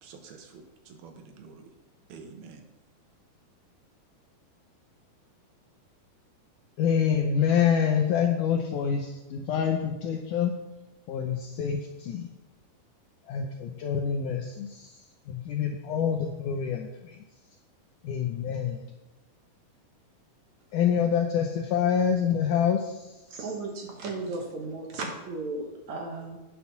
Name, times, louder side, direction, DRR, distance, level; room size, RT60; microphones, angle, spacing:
voice 1, 0.0-1.7 2.1-2.6, right 5 dB, 80° right, 4 dB, 2.9 m, -48 dB
voice 2, 6.8-10.5 11.1-12.3 13.3-15.0 15.3-17.2 18.0-18.8 20.7-23.2, left 7 dB, 80° left, 3 dB, 1.8 m, -26 dB
voice 3, 23.3-26.4, right 3 dB, 65° right, 1 dB, 2.0 m, -35 dB
9.7 x 5.7 x 5.8 m, 1.1 s
omnidirectional pair, 4.4 m